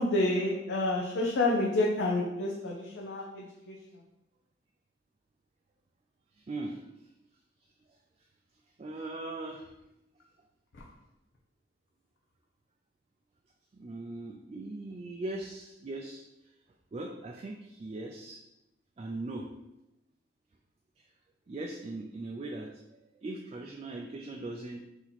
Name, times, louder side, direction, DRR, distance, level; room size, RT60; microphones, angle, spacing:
voice 1, 0.0-3.8, left 2 dB, 70° left, -3 dB, 0.6 m, -29 dB
voice 2, 6.3-7.1 7.9-8.0 8.8-9.7 13.7-16.5 16.9-18.4 19.0-19.5 21.0-21.1 21.5-24.8, right 2 dB, 35° right, 1 dB, 0.4 m, -40 dB
4.1 x 2.9 x 4.0 m, 0.89 s
head